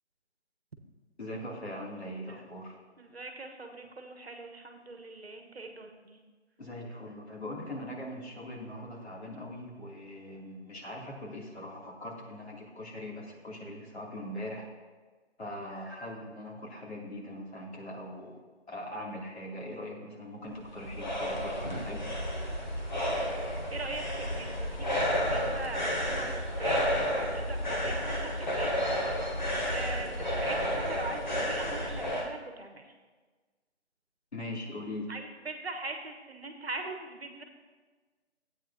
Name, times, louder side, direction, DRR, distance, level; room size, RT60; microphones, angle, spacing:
voice 1, 1.2-2.8 6.6-14.7 15.4-18.4 18.7-22.1 34.3-35.1, left 1 dB, 65° left, -4 dB, 3.0 m, -41 dB
voice 2, 3.0-6.2 23.7-26.3 26.5-28.7 29.7-32.8 35.1-37.4, right 3 dB, 60° right, 4 dB, 1.3 m, -41 dB
sound 1, 20.4-32.3, equal, 40° left, 1.3 m, -31 dB
14.0 x 8.9 x 2.8 m, 1.4 s
hypercardioid pair, 180°, 35 cm